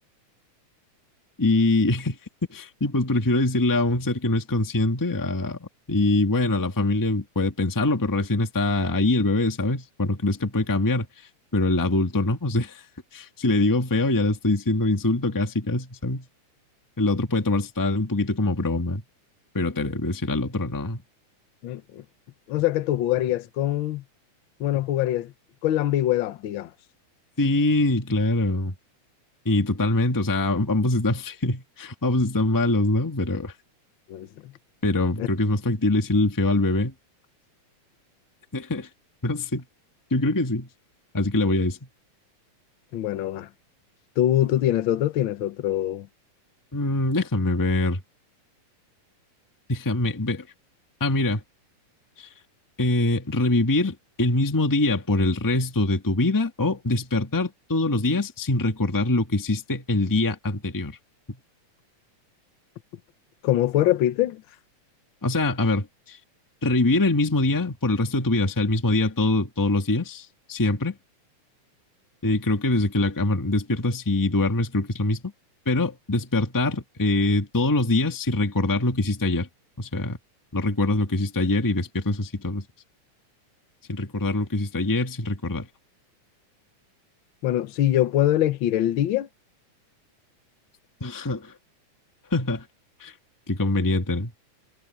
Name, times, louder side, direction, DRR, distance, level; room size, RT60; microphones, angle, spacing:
voice 1, 1.4-2.2 2.5-11.1 11.5-12.8 13.1-16.2 17.0-19.0 19.5-21.0 27.4-28.7 29.4-33.5 34.8-36.9 38.5-38.9 39.2-39.6 40.1-40.7 41.1-41.8 46.7-48.0 49.7-50.4 51.0-51.4 52.2-52.3 52.8-60.9 61.3-61.4 65.2-66.2 66.6-70.9 72.2-75.2 75.6-79.5 79.8-80.2 80.5-82.6 83.9-85.7 91.0-91.5 92.3-92.6 93.0-93.1 93.5-94.3, left 2 dB, 20° left, 0.5 m, -23 dB
voice 2, 21.6-22.0 22.5-24.0 24.6-25.3 25.6-26.7 34.1-34.5 35.2-35.3 42.9-43.5 44.2-46.1 63.4-64.4 87.4-89.3, left 13 dB, 70° left, 1.2 m, -23 dB
omnidirectional pair, 3.5 m